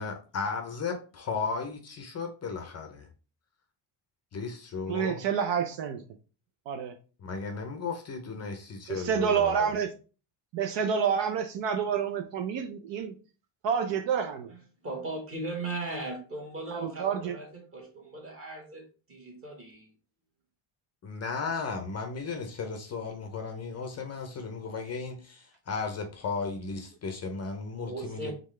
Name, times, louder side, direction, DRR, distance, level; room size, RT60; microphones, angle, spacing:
voice 1, 0.0-3.1 4.3-5.2 7.2-9.7 21.0-28.3, left 4 dB, 30° left, 0.6 m, -35 dB
voice 2, 4.9-6.0 6.7-7.0 8.9-9.9 10.5-13.1 13.6-14.5 16.7-17.4, right 7 dB, 60° right, 0.6 m, -28 dB
voice 3, 14.5-19.9 27.8-28.3, right 2 dB, 25° right, 1.4 m, -38 dB
3.8 x 3.6 x 3.2 m
cardioid pair, 150°, 50 cm